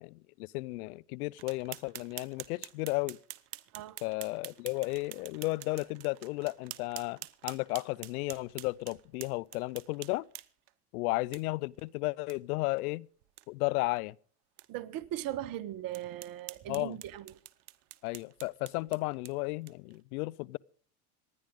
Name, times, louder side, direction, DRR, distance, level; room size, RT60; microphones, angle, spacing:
voice 1, 0.0-3.2 4.0-10.3 10.9-13.1 13.5-14.1 16.7-17.0 18.0-20.6, left 23 dB, 75° left, 0.6 m, -34 dB
sound 1, 1.4-10.7 11.3-11.4 11.8-11.9 12.3-12.4 12.7-12.8 13.2-13.4 14.0-14.1 14.6-14.7 15.2-15.3 15.9-20.0, right 16 dB, 80° right, 0.9 m, -47 dB
voice 2, 14.7-17.4, right 13 dB, 50° right, 1.2 m, -39 dB
26.0 x 10.0 x 3.7 m
hypercardioid pair, 95°, 45 cm